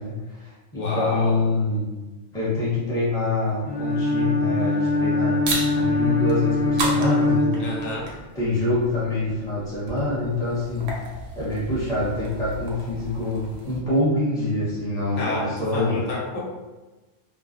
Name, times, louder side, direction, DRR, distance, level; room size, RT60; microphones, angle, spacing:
voice 1, 0.0-1.9 2.3-11.0 11.4-16.0, left 2 dB, 5° left, -10 dB, 0.6 m, -26 dB
voice 2, 0.7-1.3 7.6-8.1 15.2-16.4, left 2 dB, 75° left, -5 dB, 0.9 m, -29 dB
Bowed string instrument, 3.6-8.2, left 2 dB, 45° left, 0.6 m, -23 dB
sound 1, 5.4-13.8, right 2 dB, 65° right, 0.7 m, -35 dB
2.4 x 2.1 x 2.4 m, 1.2 s
omnidirectional pair, 1.3 m